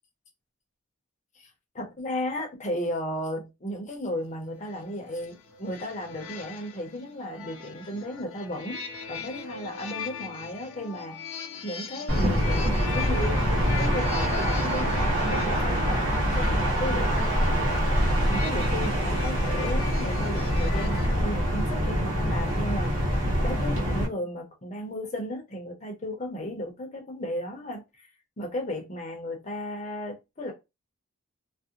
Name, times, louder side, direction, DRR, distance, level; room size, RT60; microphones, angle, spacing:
voice 1, 1.7-8.8 9.1-11.2 11.6-17.7 18.3-22.9 23.4-28.1 28.4-30.5, equal, 30° left, 0.6 m, -34 dB
sound 1, 4.6-21.2, left 5 dB, 70° left, 0.6 m, -40 dB
sound 2, 12.1-24.1, equal, 55° right, 1.0 m, -25 dB
2.4 x 2.1 x 2.7 m
head